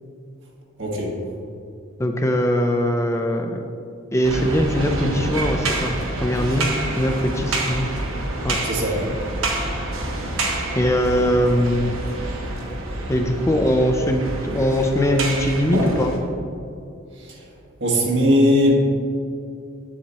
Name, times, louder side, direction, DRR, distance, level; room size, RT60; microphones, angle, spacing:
voice 1, 0.8-1.1 8.6-8.9 17.8-18.8, equal, 60° right, -2 dB, 1.5 m, -18 dB
voice 2, 2.0-3.6 4.1-6.7 7.0-7.9 8.4-8.6 10.7-11.9 13.1-16.1, equal, 15° left, 3 dB, 0.4 m, -21 dB
sound 1, 4.2-16.2, right 2 dB, 80° right, 1.0 m, -27 dB
7.9 x 7.4 x 2.9 m, 2.6 s
head